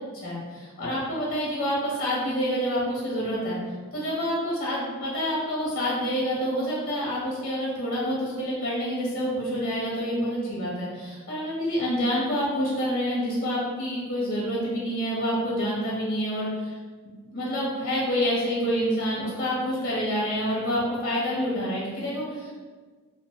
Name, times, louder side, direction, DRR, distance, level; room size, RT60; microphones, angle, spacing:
voice 1, 0.2-3.6 3.9-16.8 17.0-22.6, equal, 45° left, -6 dB, 0.6 m, -27 dB
2.7 x 2.0 x 3.4 m, 1.5 s
head